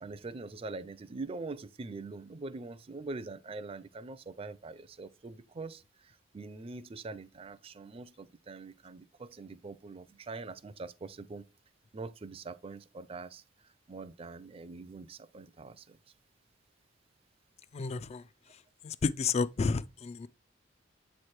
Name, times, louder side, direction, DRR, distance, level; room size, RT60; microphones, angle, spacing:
voice 1, 0.0-11.5 11.9-13.4 13.9-16.0, right 3 dB, 30° right, 0.4 m, -43 dB
voice 2, 17.7-18.2 18.8-20.3, left 4 dB, 35° left, 0.3 m, -31 dB
7.9 x 3.2 x 4.4 m
head